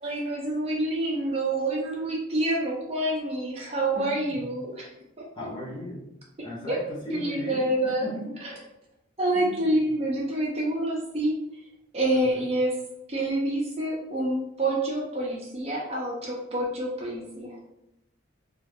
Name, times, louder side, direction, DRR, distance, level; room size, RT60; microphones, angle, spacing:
voice 1, 0.0-4.9 6.7-6.8 7.1-8.1 8.4-8.5 9.2-11.4 11.9-12.8 13.1-17.6, right 1 dB, 30° right, -3 dB, 0.4 m, -27 dB
voice 2, 4.0-4.5 5.3-6.1 6.4-7.6 8.0-8.2 9.3-9.7 12.1-12.4, equal, 25° left, -6 dB, 0.7 m, -37 dB
2.3 x 2.3 x 3.3 m, 0.88 s
head